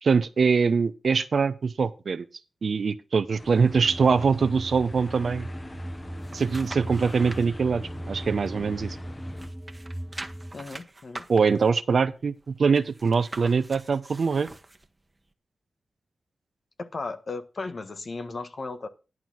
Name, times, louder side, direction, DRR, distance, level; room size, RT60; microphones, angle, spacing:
voice 1, 0.0-2.2 2.6-5.5 6.3-9.0 11.3-14.5, right 5 dB, 70° right, 0.8 m, -23 dB
sound 1, 3.4-9.5, left 1 dB, 25° left, 1.3 m, -43 dB
sound 2, 3.7-10.5, equal, 5° right, 0.7 m, -38 dB
sound 3, 5.8-7.5 7.9-9.0 9.3-14.9 15.3-15.4, right 2 dB, 30° right, 1.3 m, -44 dB
voice 2, 10.5-11.3 16.8-18.9, left 3 dB, 60° left, 1.4 m, -35 dB
11.0 x 4.4 x 7.4 m
cardioid pair, 55°, 0 cm